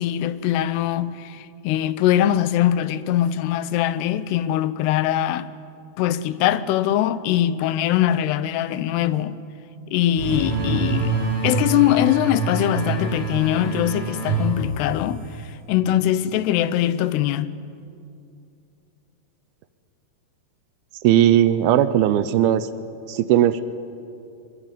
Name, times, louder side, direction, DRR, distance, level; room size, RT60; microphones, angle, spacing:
voice 1, 0.0-5.5 6.0-9.4 9.9-11.1 11.4-15.2 15.7-17.5, left 12 dB, 85° left, 2.8 m, -22 dB
sound 1, 10.2-15.5, right 4 dB, 35° right, 7.9 m, -26 dB
voice 2, 21.0-22.7 23.1-23.6, right 11 dB, 75° right, 2.5 m, -17 dB
24.5 x 23.5 x 9.1 m
omnidirectional pair, 4.7 m